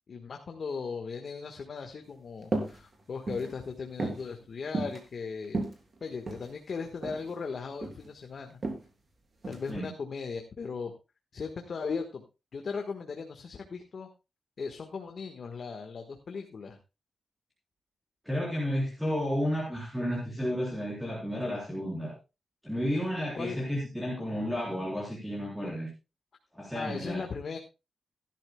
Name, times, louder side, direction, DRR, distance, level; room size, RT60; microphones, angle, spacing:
voice 1, 0.1-5.6 6.0-8.6 9.5-10.9 11.3-12.2 12.5-14.1 14.6-16.8 23.3-23.6 26.7-27.6, left 5 dB, 50° left, 4 dB, 1.3 m, -37 dB
sound 1, 2.5-2.8 3.1-3.5 4.0-4.3 4.7-5.0 5.4-6.5 7.0-7.3 7.6-8.1 8.6-8.8 9.4-9.7, right 3 dB, 40° right, 3.0 m, -33 dB
voice 2, 18.2-22.1 22.6-25.9 26.5-27.2, equal, 5° right, -4 dB, 3.7 m, -32 dB
17.5 x 12.0 x 2.2 m, 0.28 s
wide cardioid pair, 140°, 0 cm